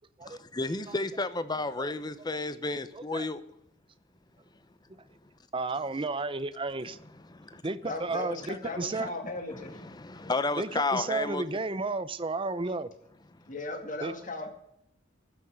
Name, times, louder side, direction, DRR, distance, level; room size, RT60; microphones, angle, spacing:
voice 1, 0.2-3.4 7.3-7.6 9.8-11.4, left 3 dB, 20° left, 0.7 m, -32 dB
voice 2, 2.9-3.3 5.5-7.0 7.6-9.1 10.6-12.9 14.0-14.1, right 3 dB, 25° right, 0.6 m, -32 dB
voice 3, 7.9-9.8 13.5-14.5, left 2 dB, 40° left, 2.3 m, -37 dB
15.0 x 6.3 x 8.8 m
head